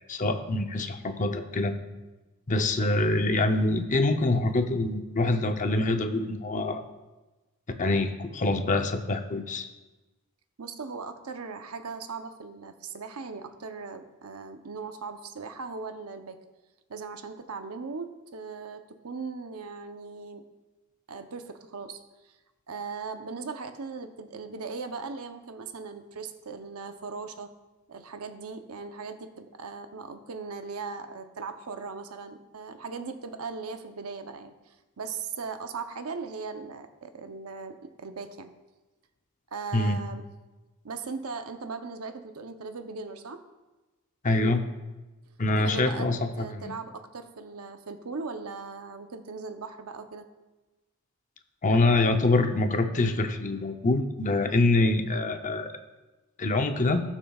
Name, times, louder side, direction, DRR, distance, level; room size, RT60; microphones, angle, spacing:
voice 1, 0.1-1.7 2.5-6.8 7.8-9.7 39.7-40.0 44.2-44.6 45.4-46.7 51.6-55.7 56.4-57.0, left 2 dB, 35° left, 6 dB, 0.7 m, -25 dB
voice 2, 10.6-16.4 16.9-20.4 21.1-22.0 22.3-22.4 22.7-27.5 27.9-34.5 35.0-38.5 39.5-40.3 40.8-43.4 45.6-46.1 46.4-50.3, right 4 dB, 75° right, 7 dB, 0.8 m, -38 dB
19.0 x 7.1 x 2.4 m, 1.1 s
head